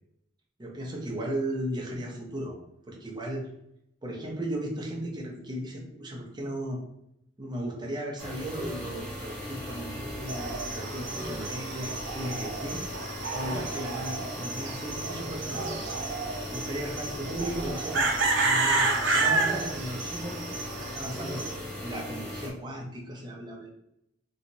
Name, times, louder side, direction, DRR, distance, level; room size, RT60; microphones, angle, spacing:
voice 1, 0.6-2.6 2.8-3.4 4.0-6.8 7.4-12.8 13.3-16.0 16.5-21.5 21.8-23.7, right 1 dB, 25° right, 0 dB, 0.7 m, -36 dB
sound 1, 8.2-22.5, equal, 5° left, 1.0 m, -38 dB
sound 2, 10.3-21.5, right 3 dB, 80° right, 0.6 m, -31 dB
3.1 x 2.9 x 2.7 m, 0.80 s
head